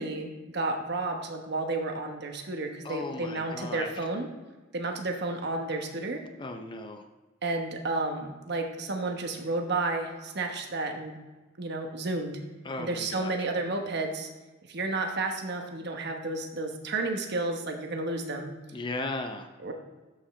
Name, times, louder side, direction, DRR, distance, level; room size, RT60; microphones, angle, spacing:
voice 1, 0.0-4.3 4.7-6.2 7.4-11.2 11.6-12.4 12.8-14.3 14.7-18.5 19.6-19.7, right 2 dB, 55° right, 3 dB, 1.1 m, -31 dB
voice 2, 2.8-4.0 6.4-7.0 12.6-13.3 18.7-19.5, left 2 dB, 25° left, 5 dB, 0.6 m, -36 dB
12.5 x 5.7 x 3.2 m, 1.2 s
head